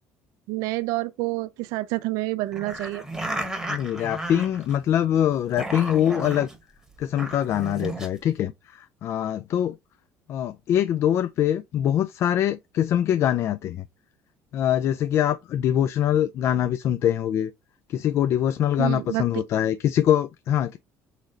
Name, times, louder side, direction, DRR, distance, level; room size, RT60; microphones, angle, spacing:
voice 1, 0.5-3.0 18.8-19.4, right 19 dB, 80° right, 0.4 m, -28 dB
sound 1, 2.5-5.0 5.3-6.6 7.0-8.1, right 2 dB, 10° right, 1.0 m, -33 dB
voice 2, 3.7-6.5 7.0-9.8 10.3-13.8 14.5-17.5 17.9-20.8, left 10 dB, 50° left, 0.3 m, -23 dB
4.0 x 3.1 x 3.8 m
cardioid pair, 120°, 6 cm